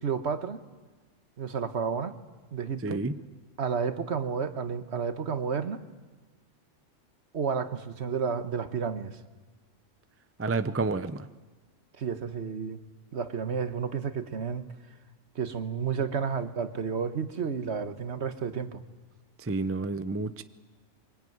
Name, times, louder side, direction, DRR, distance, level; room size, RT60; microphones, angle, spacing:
voice 1, 0.0-0.6 1.4-2.1 2.5-3.0 3.6-5.8 7.3-9.2 12.0-12.8 13.1-14.7 15.3-18.8, right 6 dB, 60° right, 10 dB, 1.4 m, -31 dB
voice 2, 2.8-3.2 10.4-11.3 19.4-20.4, right 3 dB, 15° right, 12 dB, 0.6 m, -30 dB
23.5 x 22.0 x 9.3 m, 1.3 s
omnidirectional pair, 1.3 m